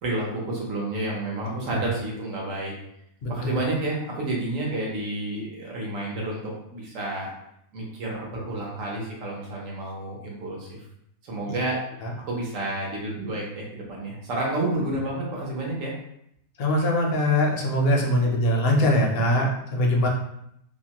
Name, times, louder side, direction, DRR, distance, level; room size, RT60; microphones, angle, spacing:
voice 1, 0.0-2.7 3.3-7.3 7.7-10.9 11.2-11.8 12.3-15.9, right 2 dB, 70° right, -3 dB, 1.2 m, -30 dB
voice 2, 3.2-3.6 12.0-12.1 16.6-20.1, left 1 dB, 60° left, 0 dB, 0.6 m, -22 dB
2.8 x 2.2 x 2.8 m, 0.76 s
omnidirectional pair, 1.4 m